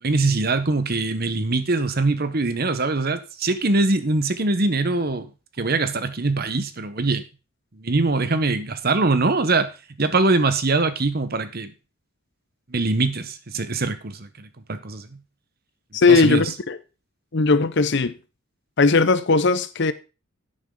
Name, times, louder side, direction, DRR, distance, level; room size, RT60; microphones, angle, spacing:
voice 1, 0.0-5.3 5.6-7.2 7.7-9.7 10.0-11.7 12.7-15.1 16.1-16.4, right 3 dB, 45° right, 1.0 m, -22 dB
voice 2, 15.9-16.8 17.3-18.2 18.8-19.9, left 4 dB, 55° left, 0.7 m, -18 dB
10.5 x 8.8 x 3.8 m
head